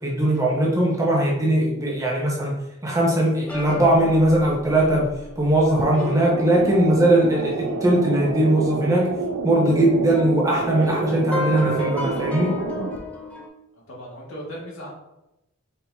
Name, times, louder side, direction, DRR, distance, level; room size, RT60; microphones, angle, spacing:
voice 1, 0.0-2.5 2.8-9.1 9.4-12.6, right 1 dB, 15° right, -3 dB, 0.7 m, -20 dB
sound 1, 3.5-8.7 9.0-9.1 9.7-13.5, equal, 5° left, 0.4 m, -34 dB
sound 2, 5.8-13.0, right 3 dB, 85° right, 0.5 m, -29 dB
voice 2, 13.7-14.9, equal, 75° left, -4 dB, 1.5 m, -37 dB
4.3 x 2.8 x 3.4 m, 0.91 s
head